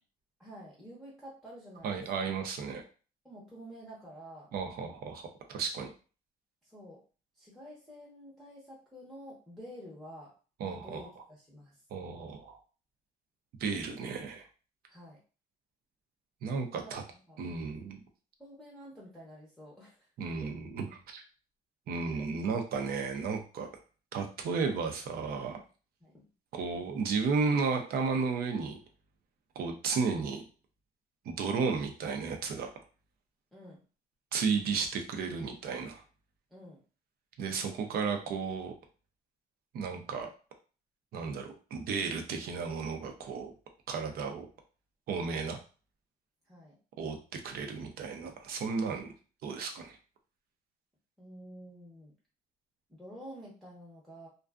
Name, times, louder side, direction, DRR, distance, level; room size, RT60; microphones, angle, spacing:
voice 1, 0.4-2.3 3.2-4.5 6.6-7.0 7.3-10.3 10.6-11.8 14.9-15.2 16.7-17.4 18.4-20.1 20.4-20.5 22.0-22.2 26.0-26.3 33.5-33.8 36.5-36.8 46.5-46.8 51.2-52.1 52.9-54.3, equal, ahead, -5 dB, 0.7 m, -49 dB
voice 2, 1.8-2.8 4.5-5.9 10.6-11.0 11.9-12.6 13.6-14.5 16.4-17.0 17.4-18.0 20.2-21.2 21.9-23.7 24.1-25.6 26.5-28.8 29.6-30.4 31.3-32.7 34.3-36.0 37.4-38.7 39.7-40.3 41.1-43.5 43.9-44.5 45.1-45.6 47.0-49.1 49.4-50.0, right 5 dB, 65° right, 4 dB, 0.6 m, -33 dB
2.5 x 2.3 x 2.3 m, 0.36 s
cardioid pair, 110°, 17 cm